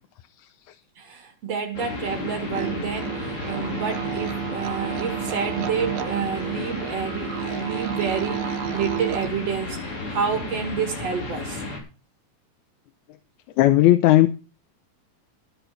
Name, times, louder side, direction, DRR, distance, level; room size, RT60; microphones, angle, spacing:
voice 1, 1.0-11.6, right 6 dB, 60° right, 2.7 m, -29 dB
sound 1, 1.7-11.8, left 3 dB, 60° left, 5.4 m, -33 dB
sound 2, 2.5-9.3, right 10 dB, 80° right, 2.1 m, -31 dB
voice 2, 13.6-14.3, left 15 dB, 80° left, 2.1 m, -15 dB
13.5 x 8.4 x 5.7 m
omnidirectional pair, 3.4 m